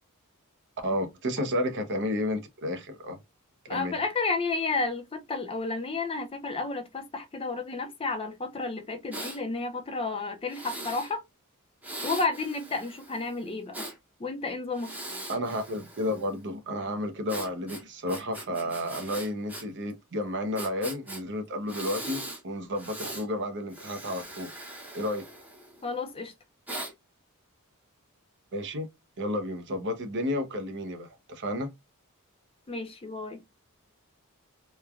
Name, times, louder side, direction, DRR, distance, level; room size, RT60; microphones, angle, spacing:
voice 1, 0.8-3.2 3.7-3.9 15.3-24.5 24.9-25.3 28.5-28.9 29.2-31.7, left 1 dB, 55° right, 0.7 m, -31 dB
voice 2, 3.7-11.2 12.0-13.9 14.2-14.9 25.8-26.3 32.7-33.4, left 3 dB, 25° left, 0.5 m, -31 dB
Breathing, 9.1-9.4 10.5-11.1 11.8-14.0 14.7-16.4 17.3-19.6 19.9-20.0 20.6-21.2 21.7-22.4 22.8-23.3 23.7-25.9 26.7-26.9, right 1 dB, 5° right, 0.7 m, -40 dB
3.1 x 2.1 x 2.3 m
head